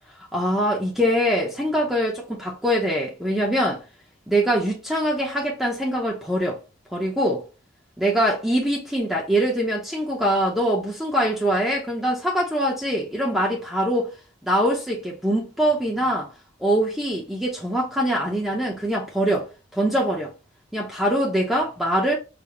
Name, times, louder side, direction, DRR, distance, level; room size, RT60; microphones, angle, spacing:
voice 1, 0.3-3.8 4.3-6.6 6.9-7.4 8.0-14.1 14.4-16.3 16.6-19.5 19.7-20.3 20.7-22.2, equal, ahead, 0.6 m, -23 dB
4.9 x 2.0 x 2.9 m
head